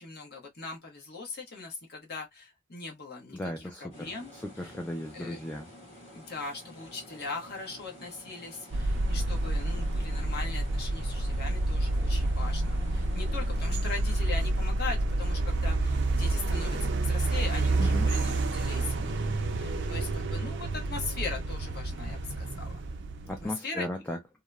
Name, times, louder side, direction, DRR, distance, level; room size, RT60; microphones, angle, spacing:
voice 1, 0.0-4.3 4.6-4.7 5.1-5.4 6.1-19.1 19.5-22.7 23.4-23.9, left 4 dB, 50° left, 1.0 m, -40 dB
voice 2, 3.3-5.7 17.8-18.1 23.3-24.2, left 1 dB, 10° left, 0.3 m, -36 dB
sound 1, 3.9-13.7, equal, 35° left, 1.2 m, -50 dB
sound 2, 8.7-23.5, right 2 dB, 60° right, 0.4 m, -29 dB
2.8 x 2.0 x 2.3 m
head